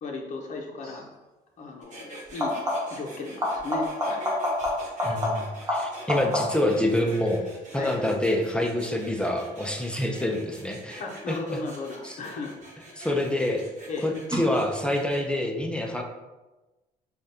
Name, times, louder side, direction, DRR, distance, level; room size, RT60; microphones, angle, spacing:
voice 1, 0.0-1.1 1.6-2.6 2.9-4.3 7.7-8.0 11.0-12.6 13.9-14.1, left 3 dB, 45° left, 1 dB, 0.7 m, -35 dB
sound 1, 0.8-1.1 2.3-3.1 3.4-6.8 12.2-12.8 14.3-14.4, left 1 dB, 20° right, 1.2 m, -29 dB
sound 2, 1.8-15.3, right 2 dB, 45° right, 1.1 m, -45 dB
voice 2, 5.0-7.4 7.7-11.0 11.3-11.6 12.0-12.1 13.0-13.6 14.0-16.0, left 1 dB, 5° left, 2 dB, 0.4 m, -26 dB
5.0 x 2.3 x 2.7 m, 1.1 s
cardioid pair, 110°, 17 cm